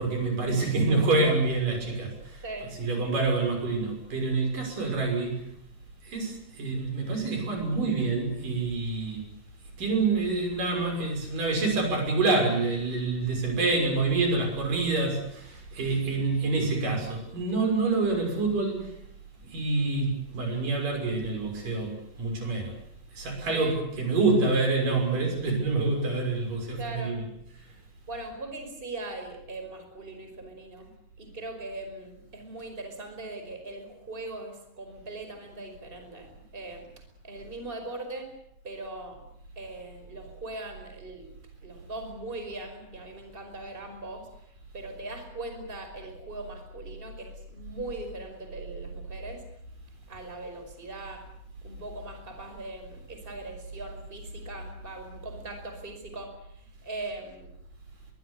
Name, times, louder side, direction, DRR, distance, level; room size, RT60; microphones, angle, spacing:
voice 1, 0.0-2.4 2.8-5.4 6.0-9.3 9.8-18.9 19.5-22.7 23.1-27.2, right 3 dB, 70° right, 3 dB, 7.8 m, -27 dB
voice 2, 2.4-2.8 13.6-13.8 23.5-23.7 26.8-27.1 28.1-30.9 31.2-36.9 37.2-38.4 38.6-39.2 39.6-41.3 41.6-44.3 44.7-49.4 50.1-51.3 51.6-57.5, right 2 dB, 15° right, 5 dB, 5.3 m, -40 dB
24.0 x 22.0 x 8.2 m, 0.76 s
omnidirectional pair, 3.8 m